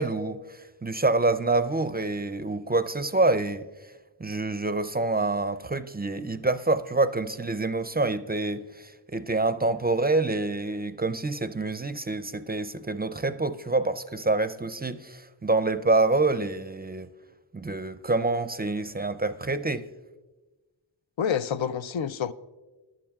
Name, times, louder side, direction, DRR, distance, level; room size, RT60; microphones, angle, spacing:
voice 1, 0.0-3.7 4.2-17.1 17.5-19.9, right 3 dB, 20° right, 0.4 m, -27 dB
voice 2, 21.2-22.3, left 7 dB, 80° left, 0.5 m, -28 dB
20.5 x 11.5 x 2.3 m
wide cardioid pair, 65°, 45 cm